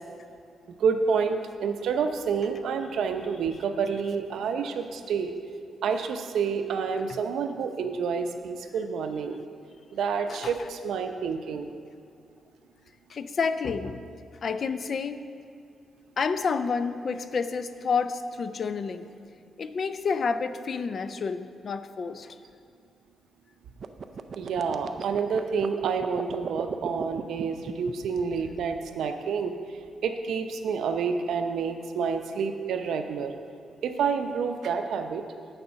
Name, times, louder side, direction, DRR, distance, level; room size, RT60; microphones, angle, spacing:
voice 1, 0.8-5.3 5.8-9.4 9.9-11.7 24.4-29.5 30.0-33.3 33.8-35.2, right 6 dB, 85° right, 6 dB, 0.6 m, -28 dB
voice 2, 13.1-14.1 14.4-15.3 16.2-19.1 19.6-22.4, left 5 dB, 45° left, 11 dB, 0.4 m, -29 dB
sound 1, 23.8-29.0, right 5 dB, 40° right, 0.4 m, -36 dB
8.6 x 6.7 x 5.6 m, 2.3 s
wide cardioid pair, 155°, 0 cm